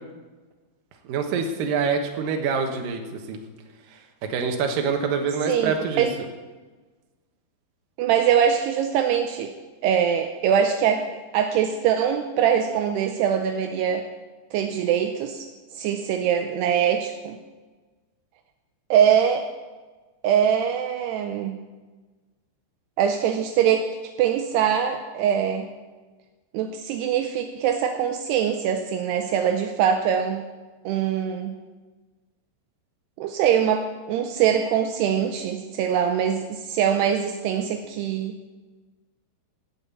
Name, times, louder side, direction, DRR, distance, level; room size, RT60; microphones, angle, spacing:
voice 1, 1.0-3.0 3.3-3.4 4.3-6.1, right 5 dB, 70° right, 4 dB, 2.2 m, -25 dB
voice 2, 5.5-6.1 8.0-9.5 9.8-11.0 11.3-14.1 14.5-17.4 18.9-19.5 20.2-21.6 23.0-25.7 26.5-30.4 30.9-31.5 33.2-38.3, right 8 dB, 85° right, 5 dB, 2.4 m, -23 dB
17.5 x 5.9 x 8.4 m, 1.3 s
omnidirectional pair, 5.6 m